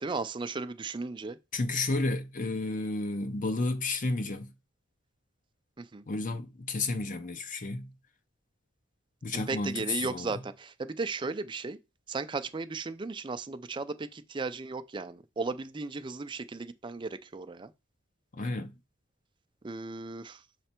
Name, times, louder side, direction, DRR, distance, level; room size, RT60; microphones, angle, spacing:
voice 1, 0.0-1.4 5.8-6.0 9.3-11.8 12.1-17.7 19.6-20.4, right 3 dB, 25° right, 0.4 m, -35 dB
voice 2, 1.5-4.5 6.1-7.9 9.2-10.3 18.3-18.7, left 2 dB, 40° left, 0.6 m, -32 dB
6.8 x 3.3 x 4.4 m
head